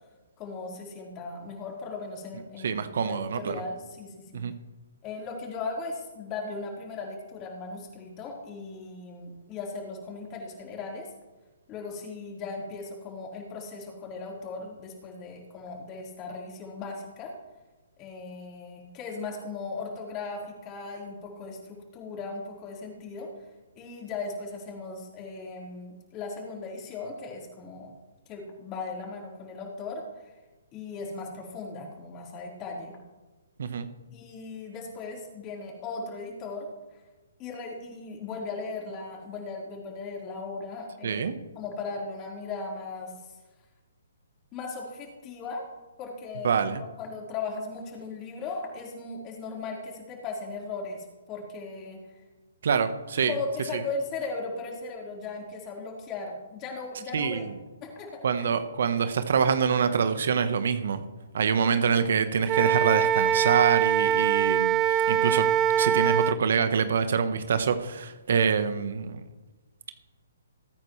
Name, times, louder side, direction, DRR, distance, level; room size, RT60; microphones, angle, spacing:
voice 1, 0.4-4.4 5.0-11.1 11.7-17.4 18.0-23.3 23.8-27.9 28.3-30.3 30.7-33.0 34.1-36.7 37.4-43.1 44.5-45.7 46.0-52.0 53.3-57.5 57.8-58.5, left 3 dB, 25° left, 4.2 m, -37 dB
voice 2, 2.6-3.6 4.3-4.5 33.6-33.9 41.0-41.4 46.4-46.8 52.6-53.3 57.1-57.5 58.2-61.0 61.3-65.5 65.8-69.2, right 6 dB, 60° right, 1.1 m, -25 dB
Wind instrument woodwind instrument, 62.5-66.4, right 9 dB, 20° right, 0.3 m, -23 dB
21.0 x 9.5 x 3.3 m
hypercardioid pair, 140°, 0 cm